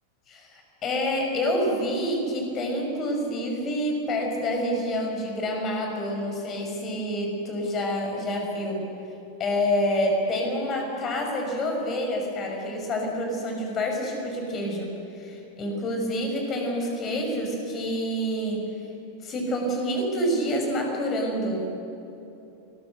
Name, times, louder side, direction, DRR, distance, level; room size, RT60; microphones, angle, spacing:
voice 1, 0.3-8.9 9.4-18.7 19.2-21.7, equal, 30° left, 2 dB, 6.7 m, -27 dB
28.5 x 21.5 x 6.7 m, 2.9 s
figure-of-eight pair, 90°, 0 cm